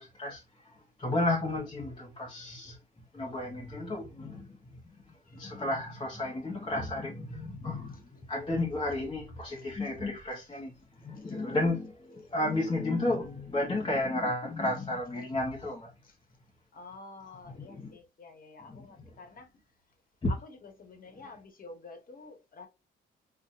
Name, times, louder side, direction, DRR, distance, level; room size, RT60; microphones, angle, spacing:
voice 1, 0.0-2.8 3.1-15.9 17.6-17.9 18.7-18.8 20.2-20.3, left 2 dB, 25° left, 0.9 m, -33 dB
voice 2, 16.7-19.5 20.3-22.7, left 3 dB, 45° left, 1.3 m, -49 dB
4.1 x 2.5 x 2.5 m
cardioid pair, 90°, 20 cm